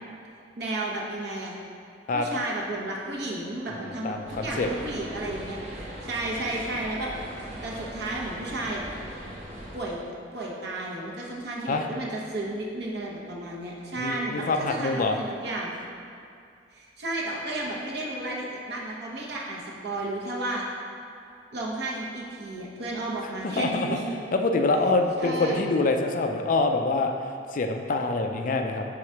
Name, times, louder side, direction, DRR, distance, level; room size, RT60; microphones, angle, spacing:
voice 1, 0.6-1.6 2.1-7.1 7.6-8.8 9.7-10.0 10.3-15.8 16.7-20.6 21.5-24.1 25.2-25.6, right 2 dB, 60° right, -3 dB, 1.0 m, -33 dB
voice 2, 3.7-4.7 11.7-11.9 14.0-15.2 23.4-24.0 24.3-27.1 27.5-28.8, left 3 dB, 45° left, 4 dB, 0.4 m, -25 dB
sound 1, 4.2-9.8, right 1 dB, 35° right, 1.0 m, -40 dB
4.8 x 3.9 x 5.7 m, 2.4 s
head